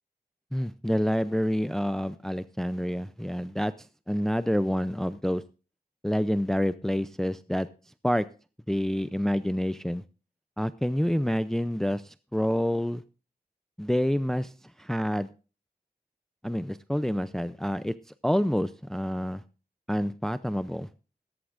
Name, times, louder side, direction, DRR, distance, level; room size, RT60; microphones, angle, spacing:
voice 1, 0.5-5.4 6.0-7.7 8.0-8.3 8.7-10.0 10.6-13.0 13.8-14.5 14.8-15.3 16.4-17.9 18.2-19.4 19.9-20.9, equal, ahead, 13 dB, 0.5 m, -28 dB
15.0 x 14.0 x 2.5 m, 0.34 s
wide cardioid pair, 60°, 17 cm